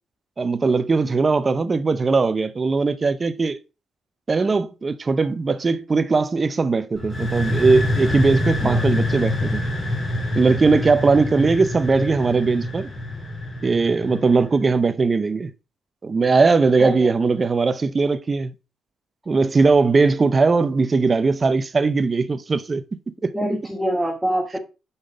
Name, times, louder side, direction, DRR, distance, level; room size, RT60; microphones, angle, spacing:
voice 1, 0.4-3.6 4.3-9.6 10.4-12.9 13.6-15.5 16.0-18.5 19.3-22.8 23.2-23.3, right 4 dB, 30° right, 0.6 m, -19 dB
sound 1, 7.0-14.6, left 1 dB, 30° left, 3.3 m, -25 dB
voice 2, 8.6-8.9 16.8-17.1 23.3-24.6, right 1 dB, 5° right, 1.3 m, -25 dB
5.6 x 5.2 x 4.0 m
cardioid pair, 90°, 0 cm